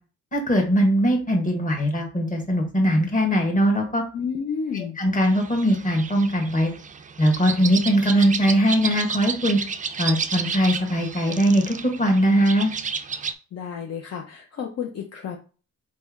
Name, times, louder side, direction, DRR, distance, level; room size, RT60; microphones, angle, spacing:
voice 1, 0.3-4.0 5.0-6.7 7.2-9.6 10.0-12.7, equal, 25° left, 2 dB, 1.5 m, -20 dB
voice 2, 4.1-5.0 13.5-15.4, left 6 dB, 50° left, 2 dB, 0.8 m, -31 dB
sound 1, 5.2-13.3, right 5 dB, 25° right, 0.4 m, -32 dB
4.2 x 3.4 x 3.6 m, 0.36 s
cardioid pair, 115°, 32 cm